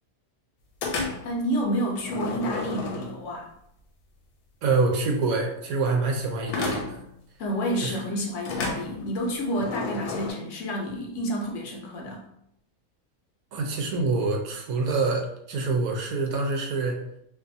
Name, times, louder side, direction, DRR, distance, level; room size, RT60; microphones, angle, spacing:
sound 1, 0.8-1.4 2.0-3.4 6.5-7.1 8.4-10.3, left 3 dB, 90° left, 1.1 m, -32 dB
voice 1, 1.2-3.5 7.4-12.2, equal, 65° left, 0 dB, 0.8 m, -29 dB
voice 2, 4.6-7.0 7.8-8.0 13.5-17.0, right 3 dB, 75° right, 2 dB, 1.0 m, -26 dB
2.5 x 2.4 x 2.5 m, 0.76 s
omnidirectional pair, 1.5 m